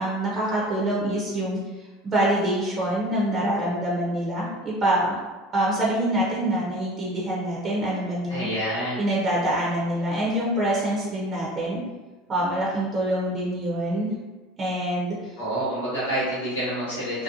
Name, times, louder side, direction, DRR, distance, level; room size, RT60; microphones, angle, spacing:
voice 1, 0.0-1.6 2.0-5.2 5.5-8.5 9.0-11.8 12.3-14.1 14.6-15.2, right 1 dB, 35° right, -6 dB, 0.7 m, -25 dB
voice 2, 8.3-9.0 15.4-17.2, right 1 dB, 85° left, -10 dB, 1.1 m, -28 dB
2.8 x 2.1 x 2.5 m, 1.2 s
hypercardioid pair, 85°, 0 cm